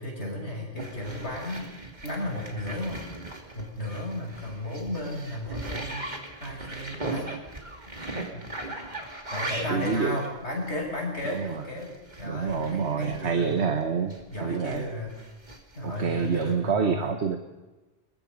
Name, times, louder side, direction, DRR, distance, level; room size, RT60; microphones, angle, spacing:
voice 1, 0.0-1.7 2.0-3.0 3.6-6.1 6.4-7.3 7.9-8.0 8.3-8.4 9.3-11.9 12.2-13.6 14.3-15.2 15.8-17.2, left 1 dB, 80° left, -1 dB, 7.0 m, -34 dB
sound 1, 0.8-13.7 14.1-16.5, right 2 dB, 40° right, 2.8 m, -39 dB
voice 2, 9.7-10.2 11.2-11.6 12.3-14.8 15.8-17.4, right 6 dB, 75° right, 6 dB, 1.6 m, -27 dB
22.5 x 22.0 x 5.4 m, 1.1 s
omnidirectional pair, 1.1 m